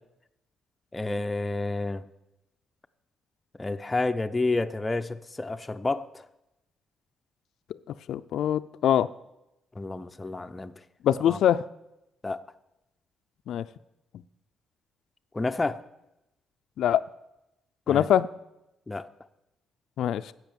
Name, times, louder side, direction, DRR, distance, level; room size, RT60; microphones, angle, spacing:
voice 1, 0.9-2.0 3.6-6.3 9.8-10.8 11.3-11.4 12.2-12.4 15.3-15.8 17.9-18.1 18.9-19.1, left 2 dB, 15° left, 8 dB, 0.5 m, -30 dB
voice 2, 8.1-9.1 11.0-11.6 13.5-13.6 16.8-17.0 17.9-18.3 20.0-20.3, left 10 dB, 70° left, 12 dB, 0.4 m, -23 dB
12.0 x 8.1 x 7.0 m, 0.90 s
cardioid pair, 145°, 0 cm